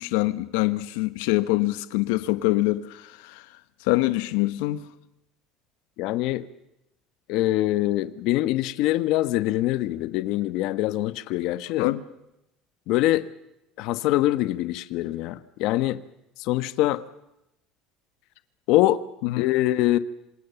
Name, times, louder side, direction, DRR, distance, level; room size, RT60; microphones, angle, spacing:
voice 1, 0.0-3.4 3.8-4.8 11.8-12.0 19.2-19.4, left 19 dB, 90° left, 1.1 m, -24 dB
voice 2, 6.0-6.4 7.3-11.9 12.9-13.3 13.8-16.0 16.4-17.0 18.7-19.0 19.4-20.0, left 16 dB, 60° left, 1.2 m, -24 dB
27.0 x 26.5 x 7.0 m
cardioid pair, 160°, 0 cm